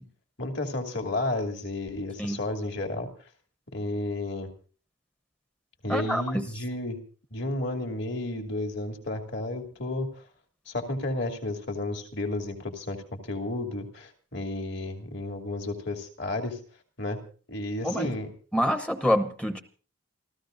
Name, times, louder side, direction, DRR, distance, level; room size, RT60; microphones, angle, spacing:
voice 1, 0.4-3.1 3.7-4.5 5.8-7.0 7.3-10.1 10.7-16.6 17.0-17.2 17.5-18.3, left 2 dB, 55° left, 5 dB, 2.7 m, -32 dB
voice 2, 5.9-6.4 17.8-18.1 18.5-19.6, equal, 5° left, 8 dB, 0.9 m, -26 dB
29.0 x 14.5 x 2.6 m, 0.38 s
head